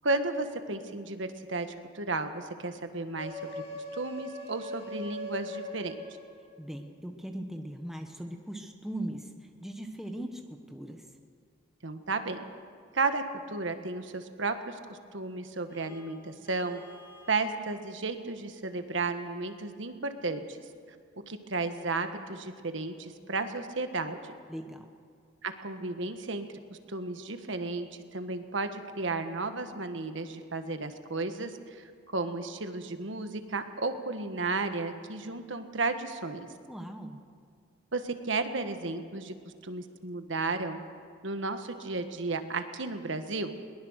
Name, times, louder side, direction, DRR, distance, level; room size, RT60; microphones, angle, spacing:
voice 1, 0.0-1.7 1.9-6.0 11.8-12.4 12.9-16.8 17.3-20.6 21.3-24.3 25.4-26.5 26.9-36.5 37.9-40.8 41.2-43.5, right 3 dB, 70° right, 8 dB, 1.4 m, -33 dB
sound 1, 3.2-6.6, left 1 dB, 30° left, 2.2 m, -40 dB
voice 2, 6.6-9.3 9.6-10.4 10.7-11.1 24.5-24.9 36.7-37.2, right 1 dB, ahead, 4 dB, 1.2 m, -39 dB
Vehicle horn car horn honking, 15.7-17.5, left 3 dB, 55° left, 6.2 m, -54 dB
21.5 x 20.0 x 6.5 m, 2.2 s
head